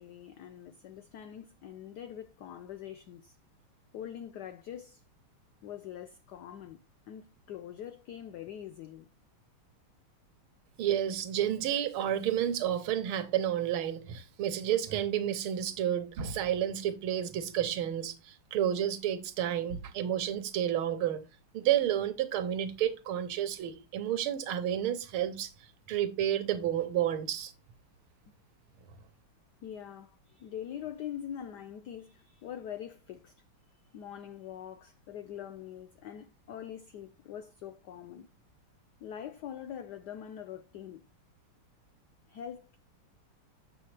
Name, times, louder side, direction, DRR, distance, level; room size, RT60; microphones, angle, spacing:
voice 1, 0.0-3.4 3.9-5.0 5.6-9.1 29.6-33.4 33.9-38.3 39.0-41.0 42.3-42.8, left 10 dB, 80° left, 0.9 m, -44 dB
voice 2, 10.8-21.2 21.5-25.5 25.9-27.5, right 10 dB, 75° right, 1.6 m, -30 dB
7.6 x 6.9 x 3.2 m
omnidirectional pair, 2.4 m